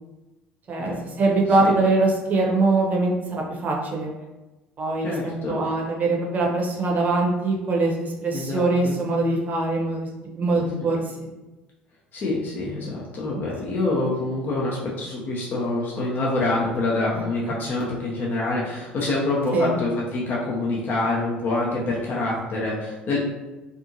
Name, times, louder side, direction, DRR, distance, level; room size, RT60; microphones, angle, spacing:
voice 1, 0.7-4.1 4.8-10.1 10.4-11.3 13.3-13.5 19.5-19.8, right 2 dB, 35° right, -1 dB, 0.7 m, -23 dB
voice 2, 5.0-5.6 8.3-9.0 10.5-10.7 12.1-23.2, left 2 dB, 40° left, -4 dB, 0.6 m, -26 dB
2.6 x 2.4 x 2.7 m, 1.1 s
figure-of-eight pair, 60°, 5 cm